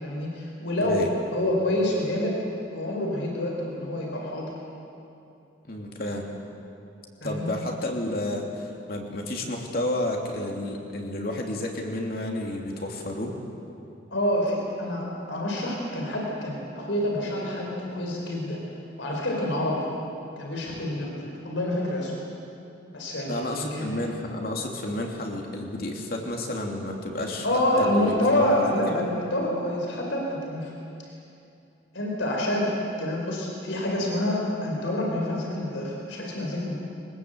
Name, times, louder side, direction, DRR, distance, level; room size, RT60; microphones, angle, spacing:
voice 1, 0.0-2.4 2.7-4.5 7.2-7.5 14.1-18.6 19.0-19.9 20.4-22.1 22.9-23.9 27.4-30.7 31.9-32.7 33.0-36.8, left 1 dB, 90° left, -1 dB, 4.5 m, -27 dB
voice 2, 0.8-1.1 5.7-6.3 7.2-13.3 23.3-27.5 27.8-28.5 28.9-29.1, left 1 dB, 50° left, 1 dB, 2.9 m, -31 dB
23.0 x 20.0 x 8.1 m, 2.7 s
head